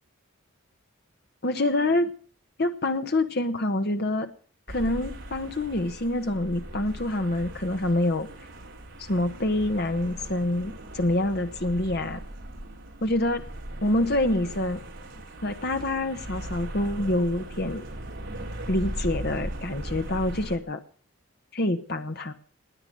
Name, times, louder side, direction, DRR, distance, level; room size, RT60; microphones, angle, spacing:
voice 1, 1.4-2.1 2.6-4.3 4.7-8.3 9.0-12.2 13.0-13.4 13.8-14.8 15.4-17.8 18.7-20.8 21.5-22.3, left 1 dB, 50° left, 7 dB, 1.2 m, -26 dB
sound 1, 4.7-20.6, right 1 dB, 55° right, 3.8 m, -38 dB
20.5 x 9.0 x 7.6 m, 0.43 s
head